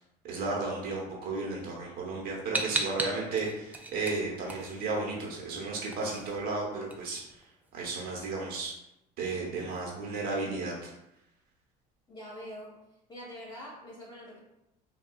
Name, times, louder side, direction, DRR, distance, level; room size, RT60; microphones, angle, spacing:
voice 1, 0.2-7.2 7.7-8.7 9.2-10.9, right 3 dB, 55° right, -2 dB, 0.9 m, -34 dB
sound 1, 2.5-5.3 5.6-7.9, right 2 dB, 10° right, 0.3 m, -36 dB
voice 2, 12.1-12.8 13.1-14.4, equal, 25° left, -6 dB, 1.5 m, -44 dB
3.6 x 2.3 x 2.2 m, 0.86 s
cardioid pair, 120°, 19 cm